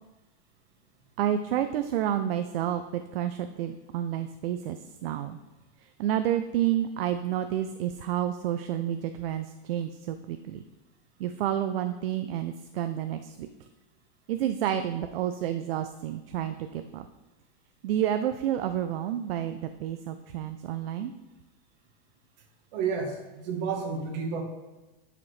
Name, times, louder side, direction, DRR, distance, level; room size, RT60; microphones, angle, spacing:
voice 1, 1.2-5.4 5.8-10.6 11.2-13.5 14.3-17.1 17.8-21.1, right 11 dB, 65° right, 8 dB, 0.5 m, -30 dB
voice 2, 22.7-24.4, right 5 dB, 40° right, 2 dB, 1.4 m, -31 dB
12.5 x 5.0 x 3.2 m, 1.1 s
supercardioid pair, 170°, 32 cm